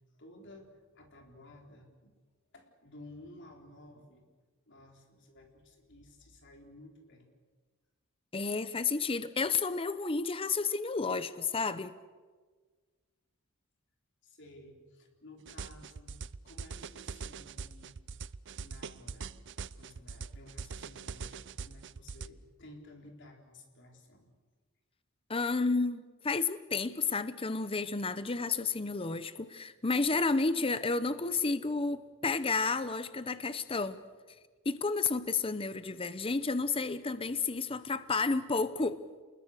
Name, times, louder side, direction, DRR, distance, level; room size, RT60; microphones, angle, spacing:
voice 1, 0.2-2.1 2.5-4.2 4.7-7.3 14.2-18.0 18.6-19.3 19.7-24.3, left 1 dB, 55° left, 3 dB, 4.1 m, -54 dB
voice 2, 8.3-12.0 25.3-34.0 34.6-39.0, left 4 dB, 25° left, 13 dB, 0.7 m, -31 dB
sound 1, 15.5-22.3, right 5 dB, 55° right, 0.6 m, -42 dB
29.0 x 21.0 x 6.6 m, 1.4 s
head